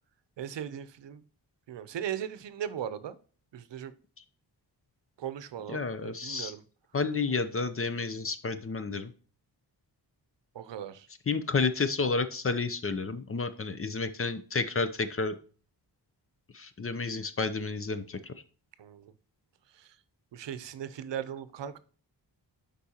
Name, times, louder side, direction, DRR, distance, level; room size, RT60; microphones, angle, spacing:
voice 1, 0.4-1.2 1.7-3.2 3.5-3.9 5.2-6.6 10.5-11.1 18.8-19.1 19.7-20.0 20.3-21.8, right 9 dB, 80° right, 14 dB, 0.7 m, -38 dB
voice 2, 5.7-6.5 6.9-9.1 11.3-15.4 16.5-18.3, left 4 dB, 30° left, 12 dB, 0.6 m, -31 dB
8.3 x 5.4 x 2.9 m, 0.40 s
wide cardioid pair, 130°, 42 cm